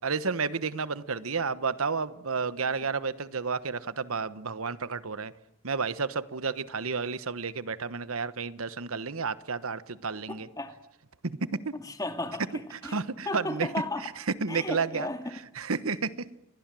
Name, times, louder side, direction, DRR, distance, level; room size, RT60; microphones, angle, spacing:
voice 1, 0.0-5.3 5.6-10.5 11.2-11.4 11.6-11.7 12.7-13.7 14.0-14.1 14.4-15.1 15.6-16.1, right 5 dB, 85° right, 1.1 m, -31 dB
voice 2, 10.1-10.8 11.7-13.0 13.3-14.1 14.5-15.3, left 2 dB, 15° left, 2.1 m, -35 dB
29.5 x 22.5 x 7.7 m
head